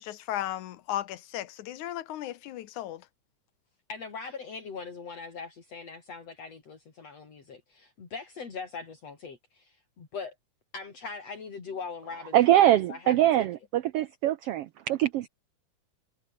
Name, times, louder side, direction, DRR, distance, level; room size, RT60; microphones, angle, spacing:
voice 1, 0.0-3.0, left 13 dB, 80° left, 2.4 m, -35 dB
voice 2, 3.9-10.3 10.7-12.6 12.9-13.4, left 5 dB, 55° left, 4.8 m, -41 dB
voice 3, 12.3-15.3, right 13 dB, 80° right, 1.3 m, -23 dB
omnidirectional pair, 3.5 m